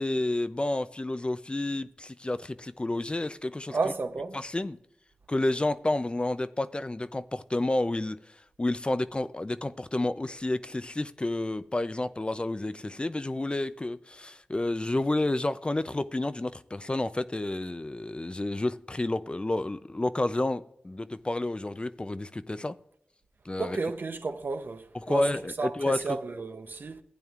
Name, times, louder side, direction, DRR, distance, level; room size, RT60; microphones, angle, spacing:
voice 1, 0.0-3.9 4.3-4.8 5.3-8.2 8.6-22.8 23.5-23.8 24.9-26.0, left 2 dB, 30° left, 0.4 m, -30 dB
voice 2, 3.7-4.4 23.6-25.2 25.6-27.0, right 3 dB, 65° right, 0.7 m, -32 dB
15.0 x 9.1 x 2.4 m
cardioid pair, 50°, 4 cm